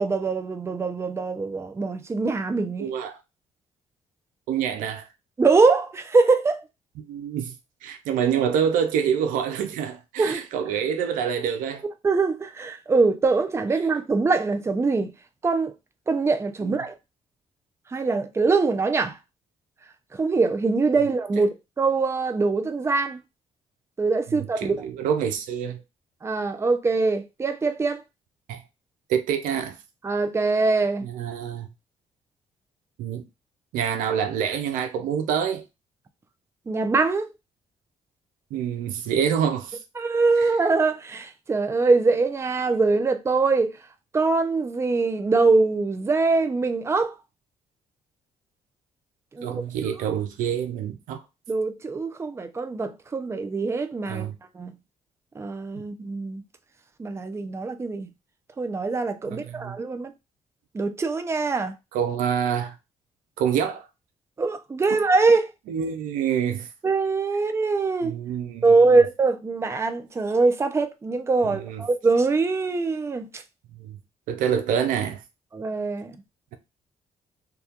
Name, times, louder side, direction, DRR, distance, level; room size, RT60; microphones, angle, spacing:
voice 1, 0.0-2.9 5.4-6.6 10.2-10.4 12.0-15.1 15.4-15.7 16.1-16.9 17.9-19.2 20.1-23.2 24.0-24.7 26.2-28.0 30.0-31.0 36.7-37.3 40.0-43.7 44.1-47.1 49.3-49.5 51.5-54.3 54.5-54.8 55.4-56.4 57.0-58.1 58.6-60.1 60.7-61.7 64.4-65.5 66.8-68.1 68.6-73.4 75.5-76.2, right 3 dB, 20° right, 0.4 m, -23 dB
voice 2, 2.8-3.2 4.5-5.1 7.0-7.5 7.8-11.8 16.6-16.8 21.0-21.1 24.3-25.8 28.5-28.6 29.1-29.8 31.0-31.7 33.0-33.2 33.7-35.6 38.5-39.8 40.4-40.5 49.4-51.2 54.1-54.4 59.3-59.8 61.9-62.7 63.4-63.9 65.7-66.7 68.0-68.9 71.4-71.9 73.8-74.0 74.3-75.2, right 8 dB, 85° right, 0.4 m, -26 dB
2.3 x 2.2 x 2.8 m
cardioid pair, 75°, 13 cm